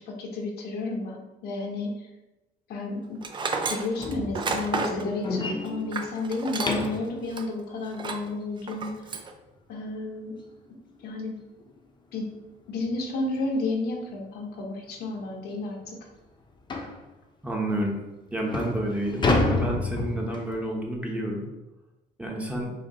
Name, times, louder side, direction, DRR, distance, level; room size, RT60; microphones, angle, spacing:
voice 1, 0.0-2.1 2.7-3.2 3.7-8.9 9.7-10.4 11.0-11.3 12.1-12.3 12.7-16.0, left 2 dB, 70° left, 1 dB, 0.9 m, -31 dB
Tools, 3.2-7.0 7.3-7.4 7.9-8.3 8.7-9.3, right 4 dB, 30° right, 0.4 m, -31 dB
sound 1, 4.0-7.1 9.9-10.0 10.5-10.7 11.0-11.1 11.6-11.7 12.8-12.9 13.3-13.5 14.1-14.2 14.6-14.7 15.2-15.3 16.7-17.0 17.7-17.8 18.3-20.6, left 2 dB, 25° left, 0.7 m, -29 dB
voice 2, 17.4-18.0 18.3-21.5 22.2-22.7, right 1 dB, 5° right, -1 dB, 0.8 m, -30 dB
4.9 x 2.8 x 2.9 m, 1.0 s
cardioid pair, 110°, 17 cm